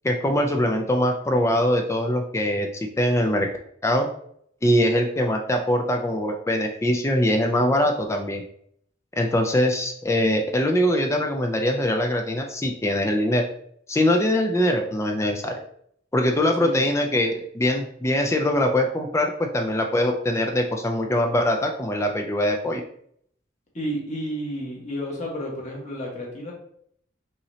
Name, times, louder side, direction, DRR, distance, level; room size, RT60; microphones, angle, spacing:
voice 1, 0.0-2.7 3.0-3.5 3.8-4.1 4.6-8.4 9.2-13.5 13.9-15.5 16.1-22.8, left 1 dB, 15° left, 3 dB, 0.4 m, -22 dB
voice 2, 23.7-26.5, equal, 40° left, -3 dB, 1.4 m, -31 dB
5.5 x 3.1 x 2.8 m, 0.67 s
head